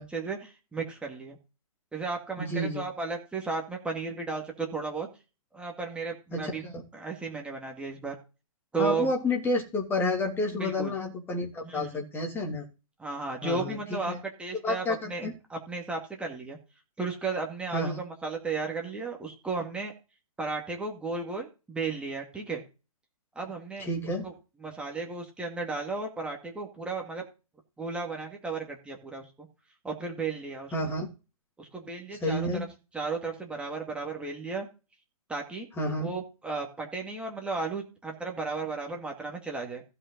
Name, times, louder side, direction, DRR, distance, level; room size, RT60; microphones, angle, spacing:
voice 1, 0.1-1.4 1.9-5.1 5.5-6.6 6.9-8.2 8.7-9.1 10.5-10.9 11.6-12.0 13.0-14.1 14.4-16.6 17.0-19.9 20.4-22.6 23.4-23.9 24.2-24.3 24.6-27.2 27.8-29.5 29.8-30.7 31.6-32.5 32.9-34.7 35.3-35.7 36.0-39.8, right 4 dB, 5° right, 1 dB, 2.2 m, -34 dB
voice 2, 2.4-2.8 6.3-6.8 8.8-12.6 13.4-13.8 14.1-14.2 14.6-15.3 17.7-18.0 23.8-24.3 30.7-31.1 32.2-32.7 35.8-36.1, left 2 dB, 10° left, 0 dB, 2.6 m, -30 dB
15.5 x 5.7 x 4.0 m, 0.31 s
hypercardioid pair, 145°, 18 cm